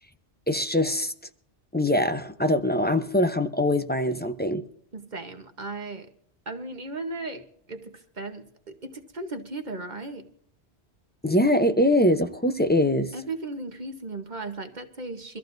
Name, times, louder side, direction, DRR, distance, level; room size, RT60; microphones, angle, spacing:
voice 1, 0.5-1.1 1.7-4.6 11.2-13.1, left 1 dB, 10° left, 0.5 m, -23 dB
voice 2, 4.9-6.1 6.5-10.3 13.1-15.4, right 2 dB, 45° right, 1.1 m, -36 dB
24.0 x 14.0 x 2.6 m
omnidirectional pair, 1.2 m